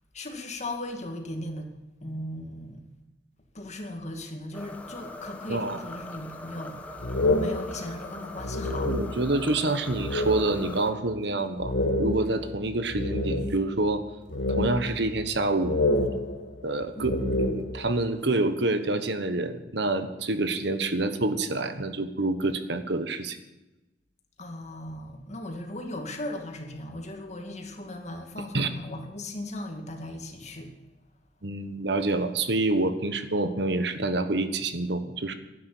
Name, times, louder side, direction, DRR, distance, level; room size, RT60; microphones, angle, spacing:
voice 1, 0.1-1.7 2.0-2.8 3.5-9.0 16.9-17.4 24.4-30.7, left 1 dB, 40° left, 3 dB, 2.2 m, -38 dB
sound 1, 4.5-10.9, left 2 dB, 10° left, 1.2 m, -42 dB
sound 2, 7.0-9.4 9.9-10.7 11.1-11.2 11.6-13.8 14.3-15.4 15.6-18.0, left 2 dB, 80° left, 1.6 m, -28 dB
voice 2, 8.8-11.7 12.0-14.0 14.6-15.8 16.6-23.4 28.5-28.7 31.4-35.3, right 2 dB, 65° right, 10 dB, 1.3 m, -27 dB
12.0 x 11.0 x 8.4 m, 1.0 s
head